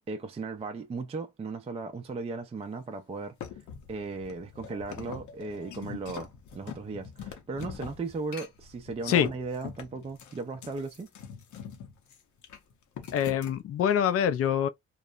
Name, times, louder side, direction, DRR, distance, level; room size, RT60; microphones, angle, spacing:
voice 1, 0.0-11.1, right 4 dB, 20° right, 0.4 m, -37 dB
sound 1, 3.4-13.6, left 8 dB, 75° left, 0.8 m, -44 dB
voice 2, 13.1-14.7, left 9 dB, 50° left, 0.4 m, -25 dB
3.0 x 2.0 x 2.3 m
cardioid pair, 90°, 30 cm